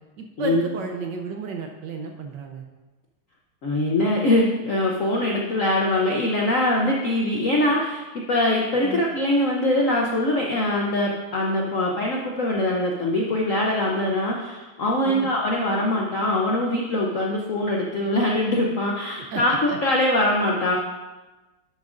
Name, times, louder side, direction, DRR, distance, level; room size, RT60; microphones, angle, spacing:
voice 1, 0.2-2.6 8.8-9.0 15.0-15.3 19.3-19.8, right 4 dB, 70° right, 3 dB, 1.1 m, -32 dB
voice 2, 3.6-8.0 8.3-20.8, left 1 dB, 65° left, -1 dB, 0.7 m, -23 dB
11.0 x 7.4 x 2.5 m, 1.2 s
omnidirectional pair, 2.4 m